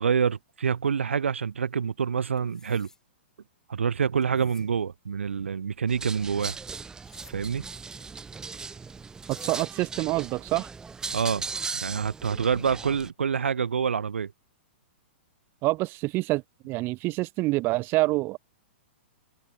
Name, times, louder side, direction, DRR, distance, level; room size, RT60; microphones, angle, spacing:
voice 1, 0.0-2.9 3.7-6.6 7.3-7.7 11.1-11.4 11.8-14.3, right 6 dB, 85° right, 1.4 m, -27 dB
sound 1, 2.4-3.0 4.2-4.7 7.0-7.4 8.9-9.0 9.2-9.7, left 3 dB, 10° left, 4.1 m, -54 dB
sound 2, 5.9-13.1, right 5 dB, 10° right, 0.7 m, -38 dB
voice 2, 9.3-10.7 15.6-18.4, right 21 dB, 35° right, 1.5 m, -27 dB
hypercardioid pair, 130°, 6 cm